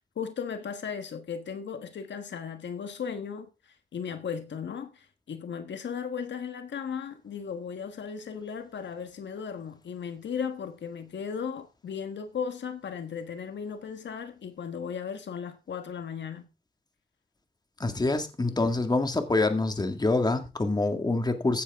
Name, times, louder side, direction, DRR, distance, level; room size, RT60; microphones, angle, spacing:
voice 1, 0.1-16.4 18.5-18.6, left 7 dB, 75° left, 1.4 m, -36 dB
voice 2, 17.8-21.6, left 2 dB, 20° left, 1.9 m, -26 dB
15.0 x 9.9 x 3.6 m
wide cardioid pair, 110°, 19 cm